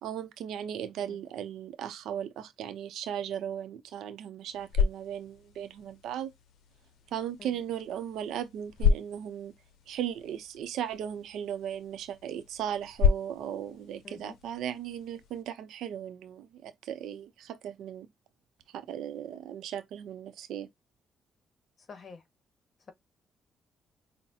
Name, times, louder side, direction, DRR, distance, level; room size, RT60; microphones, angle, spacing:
voice 1, 0.0-6.3 7.1-9.5 9.9-18.1 18.7-20.7, right 9 dB, 80° right, 0.7 m, -37 dB
sound 1, 4.3-15.4, left 6 dB, 80° left, 0.6 m, -33 dB
voice 2, 14.0-14.4 21.9-22.2, left 4 dB, 45° left, 1.1 m, -48 dB
5.6 x 2.1 x 2.8 m
cardioid pair, 90°, 0 cm